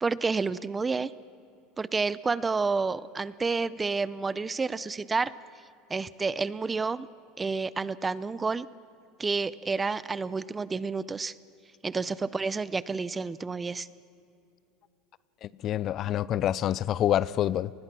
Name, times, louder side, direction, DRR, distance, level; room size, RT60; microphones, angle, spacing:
voice 1, 0.0-1.1 1.8-5.3 5.9-7.1 7.4-8.7 9.2-11.3 11.8-13.9, right 4 dB, 15° right, 18 dB, 0.5 m, -29 dB
voice 2, 15.4-17.7, left 11 dB, 40° left, 20 dB, 0.5 m, -27 dB
28.0 x 20.5 x 6.1 m, 2.7 s
supercardioid pair, 135°, 0 cm